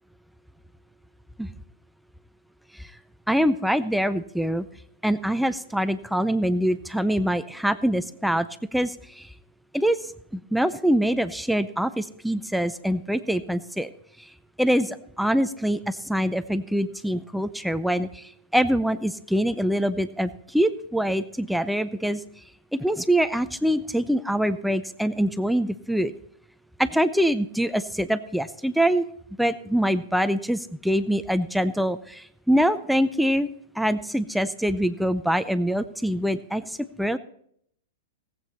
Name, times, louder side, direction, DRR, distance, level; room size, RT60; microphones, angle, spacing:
voice 1, 3.3-4.7 5.0-8.5 8.7-9.3 9.7-13.9 14.2-14.3 14.6-22.2 22.7-26.1 26.8-29.0 29.4-33.5 33.8-37.2, equal, ahead, 13 dB, 0.4 m, -24 dB
18.0 x 8.4 x 4.0 m, 0.68 s
hypercardioid pair, 115°, 0 cm